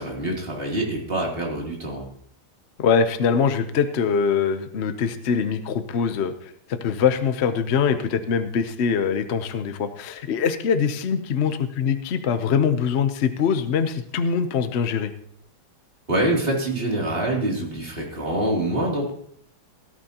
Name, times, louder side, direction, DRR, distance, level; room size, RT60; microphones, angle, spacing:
voice 1, 0.0-2.1 16.1-19.1, right 1 dB, 25° right, -2 dB, 3.1 m, -25 dB
voice 2, 2.8-6.3 6.7-15.1, left 6 dB, 70° left, 9 dB, 0.6 m, -23 dB
17.5 x 12.5 x 2.9 m, 0.65 s
omnidirectional pair, 2.2 m